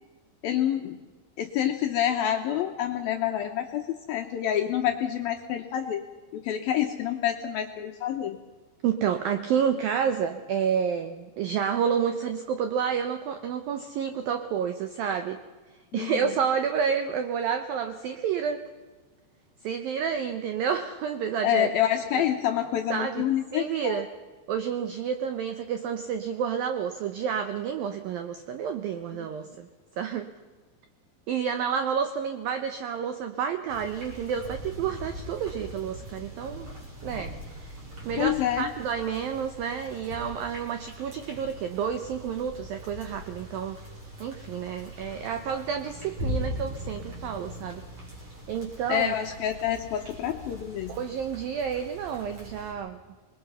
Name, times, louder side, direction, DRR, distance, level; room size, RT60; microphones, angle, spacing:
voice 1, 0.4-1.0 1.4-6.0 6.3-8.4 15.9-16.3 21.4-24.0 38.2-38.7 48.9-50.9, left 11 dB, 75° left, 4 dB, 2.2 m, -27 dB
voice 2, 8.8-15.4 15.9-18.6 19.6-21.7 22.1-22.2 22.9-23.2 23.5-24.1 24.5-29.7 30.0-30.3 31.3-36.7 37.0-37.3 37.7-37.8 38.1-43.8 44.2-47.8 48.5-49.2 50.9-53.0, right 7 dB, 80° right, 8 dB, 2.0 m, -29 dB
sound 1, 33.7-52.7, equal, 30° right, 5.7 m, -40 dB
26.5 x 21.5 x 5.6 m, 1.4 s
omnidirectional pair, 5.4 m